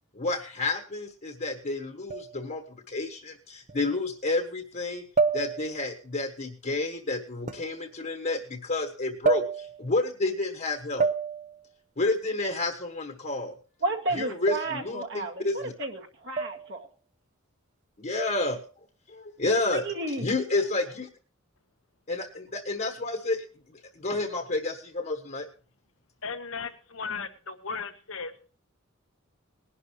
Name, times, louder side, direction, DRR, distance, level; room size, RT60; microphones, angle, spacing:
voice 1, 0.1-5.0 5.3-11.1 12.0-13.5 14.1-15.7 18.0-18.6 19.1-19.8 20.2-21.1 22.1-23.4 23.9-25.5, left 2 dB, 45° left, 1.4 m, -30 dB
sound 1, 2.1-2.5 3.7-3.8 5.2-5.9 7.5-7.7 9.2-9.9 11.0-11.7 14.5-15.0 16.4-16.8 18.2-18.6, right 4 dB, 40° right, 0.9 m, -29 dB
voice 2, 13.8-16.9 19.7-20.3, right 2 dB, 60° right, 2.1 m, -32 dB
voice 3, 26.2-28.5, left 5 dB, 80° left, 1.4 m, -36 dB
19.5 x 11.5 x 3.2 m
head